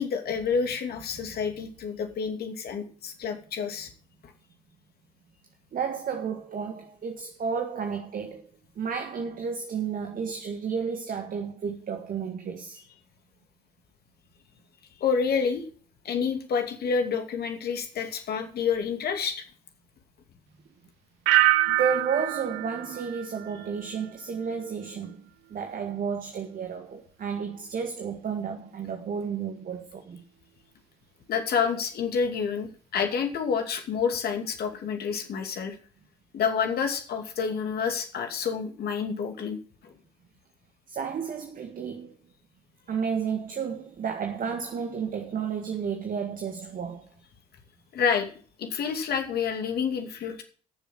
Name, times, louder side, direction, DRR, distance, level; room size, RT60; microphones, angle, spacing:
voice 1, 0.0-3.9 15.0-15.6 16.0-19.5 31.3-35.8 36.3-39.6 39.8-39.9 47.9-48.3 48.6-50.4, left 6 dB, 55° left, 2.5 m, -28 dB
voice 2, 5.7-12.8 21.7-30.2 40.9-42.1 42.9-47.1, right 6 dB, 45° right, 1.8 m, -32 dB
sound 1, 21.3-24.1 24.4-24.9, right 17 dB, 65° right, 0.6 m, -26 dB
11.5 x 7.1 x 7.7 m
figure-of-eight pair, 50°, 20 cm